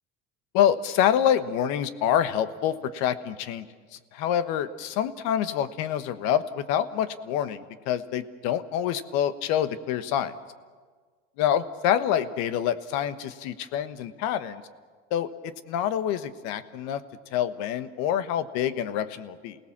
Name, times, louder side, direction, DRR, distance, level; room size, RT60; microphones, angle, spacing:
voice 1, 0.5-3.7 3.9-10.3 11.4-14.6 15.1-17.0 17.3-19.6, left 10 dB, 65° left, 13 dB, 1.3 m, -26 dB
28.0 x 18.0 x 7.3 m, 1.5 s
supercardioid pair, 125°, 29 cm